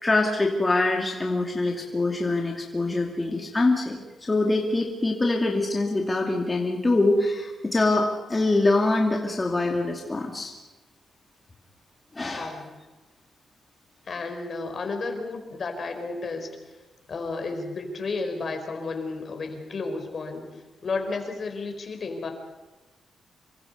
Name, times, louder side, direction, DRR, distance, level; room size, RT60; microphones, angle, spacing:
voice 1, 0.0-10.5 12.1-12.6, left 2 dB, 25° left, 0 dB, 2.7 m, -24 dB
voice 2, 12.3-12.7 14.1-16.5 17.1-22.3, left 3 dB, 50° left, 5 dB, 4.6 m, -32 dB
27.5 x 23.5 x 5.4 m, 1.2 s
cardioid pair, 80°, 0 cm